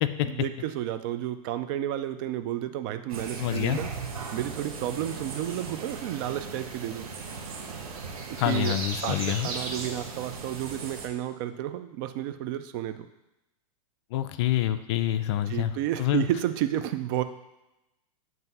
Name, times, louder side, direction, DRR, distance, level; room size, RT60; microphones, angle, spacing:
voice 1, 0.2-3.9 4.3-7.1 8.3-8.7 9.0-13.1 15.5-17.2, right 12 dB, 40° right, 10 dB, 0.4 m, -31 dB
sound 1, 3.1-11.1, right 4 dB, 85° right, 1.1 m, -37 dB
voice 2, 3.4-3.8 8.4-9.5 14.1-16.2, left 12 dB, 50° left, 10 dB, 0.4 m, -27 dB
7.8 x 2.7 x 5.4 m, 0.93 s
supercardioid pair, 155°, 18 cm